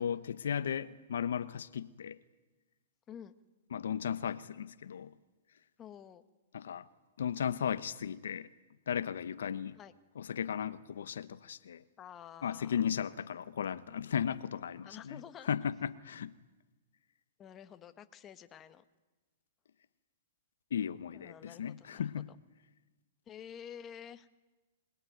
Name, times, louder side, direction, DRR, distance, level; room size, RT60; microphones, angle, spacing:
voice 1, 0.0-2.2 3.7-5.1 6.5-6.9 7.2-8.5 8.9-9.8 10.2-11.8 12.4-16.3 20.7-22.3, left 8 dB, 80° left, 1.0 m, -36 dB
voice 2, 5.8-6.2 9.7-9.9 12.0-12.8 14.8-15.5 17.4-18.8 21.1-22.1 23.3-24.3, left 9 dB, 25° left, 1.4 m, -50 dB
25.0 x 20.0 x 9.4 m
hypercardioid pair, 135°, 0 cm